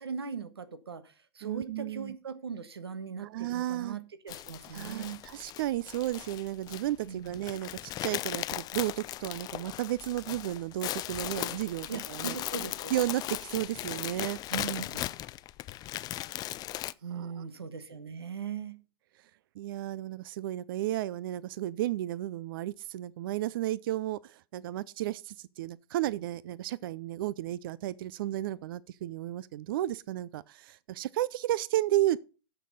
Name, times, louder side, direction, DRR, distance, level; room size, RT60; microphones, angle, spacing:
voice 1, 0.0-5.2 7.0-7.4 11.9-13.0 14.5-15.0 17.0-18.8, right 6 dB, 85° right, 1.4 m, -39 dB
voice 2, 1.4-2.2 3.2-4.0 4.7-12.4 12.9-14.4 17.1-17.4 19.6-32.2, right 14 dB, 60° right, 0.4 m, -33 dB
sound 1, 4.3-16.9, left 15 dB, 30° left, 0.5 m, -38 dB
9.9 x 6.8 x 5.3 m
hypercardioid pair, 105°, 13 cm